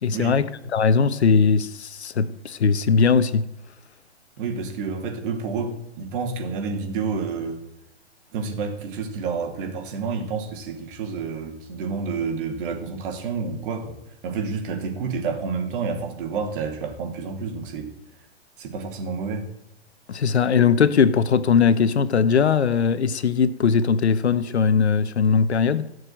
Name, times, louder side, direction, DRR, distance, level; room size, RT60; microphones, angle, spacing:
voice 1, 0.0-3.5 20.1-25.9, left 6 dB, 85° left, 1.2 m, -20 dB
voice 2, 4.4-7.6 8.3-14.0 14.2-17.9 18.6-19.5, right 5 dB, 50° right, 3.6 m, -29 dB
18.0 x 6.8 x 9.1 m
hypercardioid pair, 125°, 32 cm